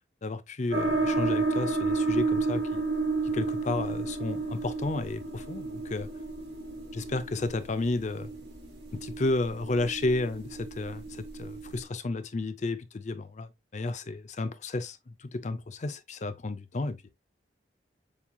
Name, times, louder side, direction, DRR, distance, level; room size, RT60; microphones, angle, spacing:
voice 1, 0.2-2.8 3.3-6.1 6.9-8.3 8.9-17.1, left 2 dB, 40° left, 0.5 m, -32 dB
sound 1, 0.7-11.8, right 3 dB, 75° right, 3.5 m, -32 dB
7.1 x 2.8 x 2.2 m
head